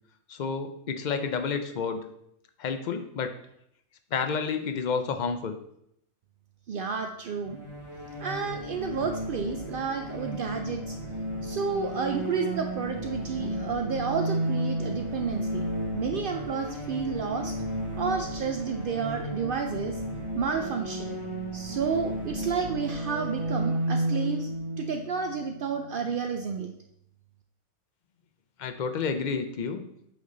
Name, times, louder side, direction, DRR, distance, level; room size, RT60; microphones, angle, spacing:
voice 1, 0.3-2.0 2.6-3.4 4.1-5.6 28.6-29.8, left 5 dB, 70° left, 8 dB, 0.4 m, -30 dB
voice 2, 6.7-7.6 8.2-11.0 11.4-15.7 15.9-17.6 17.9-20.0 20.3-21.2 21.5-24.5 24.8-26.7, right 5 dB, 75° right, 5 dB, 0.5 m, -31 dB
sound 1, 7.4-26.1, right 1 dB, 20° right, 1.2 m, -33 dB
8.3 x 4.4 x 3.8 m, 0.75 s
omnidirectional pair, 1.5 m